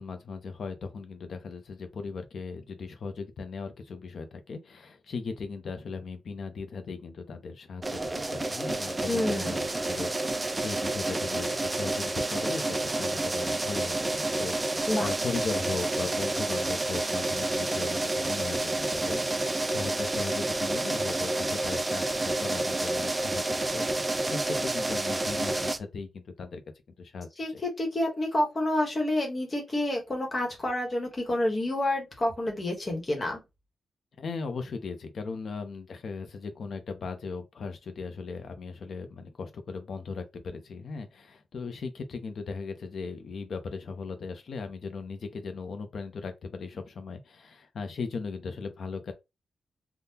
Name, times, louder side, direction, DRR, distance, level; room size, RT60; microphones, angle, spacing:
voice 1, 0.0-26.6 27.0-27.6 34.2-49.1, left 4 dB, 55° left, 0.7 m, -38 dB
sound 1, 7.8-25.8, right 2 dB, 15° right, 0.4 m, -29 dB
voice 2, 9.1-9.6 14.9-15.1 27.4-33.4, left 1 dB, 25° left, 1.2 m, -28 dB
3.6 x 2.3 x 2.8 m
wide cardioid pair, 170°, 0 cm